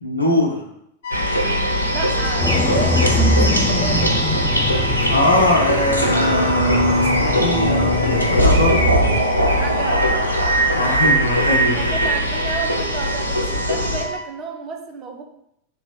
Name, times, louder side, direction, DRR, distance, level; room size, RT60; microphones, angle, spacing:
voice 1, 0.0-0.7 5.1-9.0 10.7-11.8, left 1 dB, 85° left, 0 dB, 0.8 m, -21 dB
sound 1, 1.0-14.2, equal, 55° left, 0.3 m, -30 dB
sound 2, 1.1-14.0, equal, 85° right, 0.6 m, -20 dB
voice 2, 1.8-4.2 9.5-10.4 11.7-15.2, right 4 dB, 30° right, 3 dB, 0.7 m, -31 dB
sound 3, 2.4-9.2, left 1 dB, 20° left, 0.8 m, -23 dB
3.6 x 3.0 x 4.4 m, 0.77 s
figure-of-eight pair, 90°, 0 cm